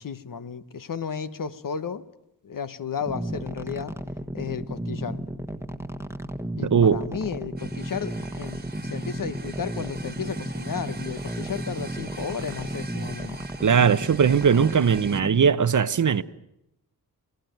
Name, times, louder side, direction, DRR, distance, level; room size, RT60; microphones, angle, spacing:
voice 1, 0.0-2.0 2.4-3.9 4.3-5.2 6.6-13.4, left 6 dB, 55° left, 1.2 m, -33 dB
sound 1, 3.0-15.5, right 1 dB, 5° right, 1.4 m, -34 dB
voice 2, 6.6-7.0 13.6-16.2, right 7 dB, 50° right, 0.9 m, -19 dB
sound 2, 7.6-15.2, right 3 dB, 25° right, 1.8 m, -44 dB
29.0 x 19.5 x 9.3 m
wide cardioid pair, 130°, 39 cm